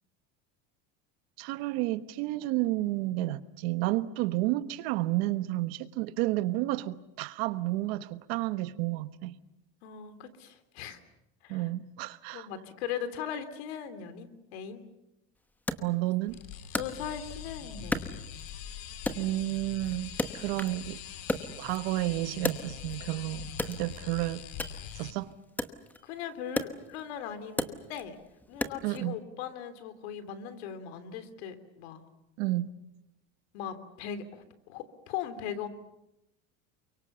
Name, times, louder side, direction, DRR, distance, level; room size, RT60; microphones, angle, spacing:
voice 1, 1.4-9.3 11.5-12.5 15.8-16.4 19.1-21.0 21.4-24.4 24.9-25.3 28.8-29.2 32.4-32.7, right 17 dB, 70° right, 1.3 m, -31 dB
voice 2, 9.8-11.0 11.4-11.6 12.3-14.8 16.7-18.1 26.0-28.2 28.5-32.0 33.5-35.7, left 8 dB, 85° left, 3.2 m, -39 dB
Wood, 15.7-17.5 17.9-18.7 19.1-20.9 21.2-23.1 23.5-29.0, left 1 dB, 5° left, 1.0 m, -36 dB
sound 1, 16.3-25.1, left 9 dB, 65° left, 3.1 m, -43 dB
29.0 x 24.0 x 7.0 m
cardioid pair, 160°, 32 cm